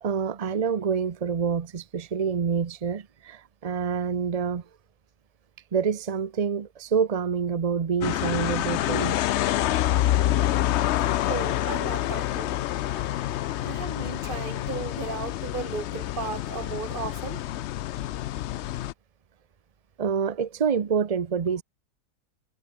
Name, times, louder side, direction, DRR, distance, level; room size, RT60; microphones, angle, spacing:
voice 1, 0.0-4.6 5.7-9.3 13.5-13.7 20.0-21.6, right 6 dB, 55° right, 0.4 m, -27 dB
sound 1, 8.0-18.9, left 13 dB, 75° left, 0.6 m, -27 dB
voice 2, 11.3-12.6 12.9-13.1 13.6-17.4, right 4 dB, 35° right, 1.6 m, -35 dB
omnidirectional pair, 1.7 m